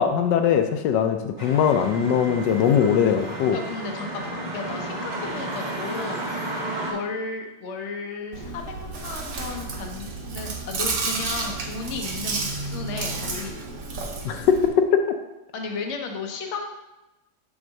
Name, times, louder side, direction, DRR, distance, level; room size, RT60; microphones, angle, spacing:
voice 1, 0.0-3.6 14.2-15.0, left 8 dB, 80° left, 6 dB, 1.2 m, -21 dB
sound 1, 1.4-6.9, right 1 dB, 25° right, 1.9 m, -32 dB
voice 2, 3.5-6.3 6.9-13.6 15.5-16.7, left 4 dB, 50° left, 2 dB, 1.0 m, -34 dB
Chewing mastication, 8.3-14.7, right 3 dB, 85° right, 1.6 m, -31 dB
6.8 x 3.7 x 6.3 m, 1.0 s
omnidirectional pair, 1.9 m